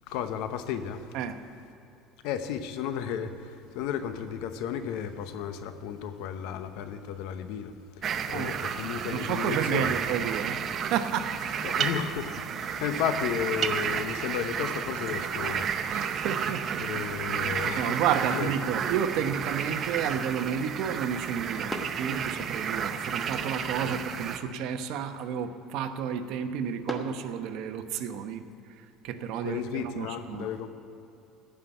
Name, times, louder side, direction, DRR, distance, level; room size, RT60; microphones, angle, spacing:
voice 1, 0.1-1.1 2.2-9.9 11.6-15.7 16.8-18.0 18.3-18.5 23.8-23.9 29.4-30.7, left 8 dB, 75° left, 9 dB, 0.8 m, -33 dB
sound 1, 8.0-24.4, right 7 dB, 40° right, 0.7 m, -32 dB
voice 2, 9.1-10.6 10.9-11.8 15.9-30.5, right 8 dB, 65° right, 8 dB, 0.9 m, -31 dB
sound 2, 17.9-28.0, equal, 5° left, 1.2 m, -47 dB
15.0 x 5.8 x 9.0 m, 2.9 s
cardioid pair, 130°, 0 cm